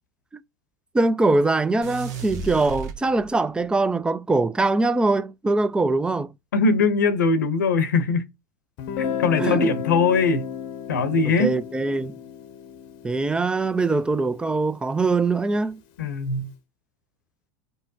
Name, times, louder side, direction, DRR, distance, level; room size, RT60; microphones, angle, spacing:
voice 1, 0.9-6.3 9.4-9.7 11.4-12.2 13.0-15.8, right 3 dB, 10° right, 0.4 m, -22 dB
sound 1, 1.8-3.6, right 5 dB, 65° right, 1.0 m, -35 dB
voice 2, 6.5-8.2 9.0-10.5 10.9-11.6 16.0-16.5, left 4 dB, 80° left, 0.8 m, -21 dB
Guitar, 8.8-14.6, left 8 dB, 55° left, 0.8 m, -33 dB
5.4 x 2.2 x 2.7 m
hypercardioid pair, 85°, 10 cm